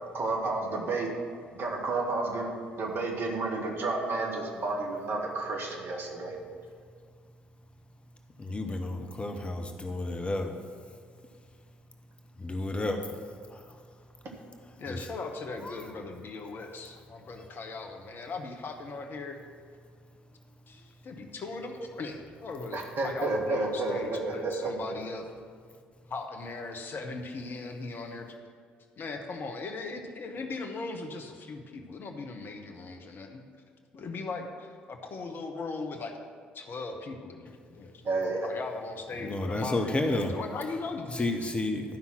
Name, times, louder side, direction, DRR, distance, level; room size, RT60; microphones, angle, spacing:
voice 1, 0.1-1.1 1.5-2.5 2.8-6.3 22.7-24.9 38.0-38.5, right 3 dB, 45° right, 0 dB, 1.8 m, -31 dB
voice 2, 8.4-10.6 12.4-13.2 13.5-13.6 14.9-15.0 15.6-15.8 39.2-40.3 41.1-42.0, left 2 dB, 20° left, 4 dB, 0.9 m, -31 dB
voice 3, 14.8-19.4 20.7-22.8 23.0-25.3 26.1-28.4 29.0-33.4 33.9-36.2 36.5-38.0 38.4-41.5, left 3 dB, 40° left, 4 dB, 1.1 m, -39 dB
12.0 x 5.6 x 6.0 m, 2.1 s
figure-of-eight pair, 50°, 5 cm